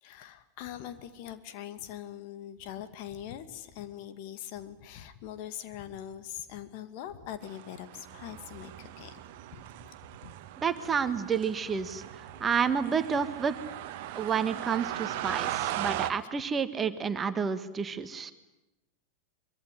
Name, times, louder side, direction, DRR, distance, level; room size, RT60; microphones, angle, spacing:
voice 1, 0.0-9.1 9.5-9.9 10.2-10.3 14.2-14.3 15.4-15.7, left 11 dB, 45° left, 10 dB, 2.1 m, -42 dB
sound 1, 7.4-16.1, right 13 dB, 45° right, 1.4 m, -38 dB
voice 2, 10.6-13.6 14.1-18.3, right 6 dB, 20° right, 10 dB, 1.7 m, -30 dB
24.0 x 24.0 x 10.0 m, 0.94 s
figure-of-eight pair, 90°, 0 cm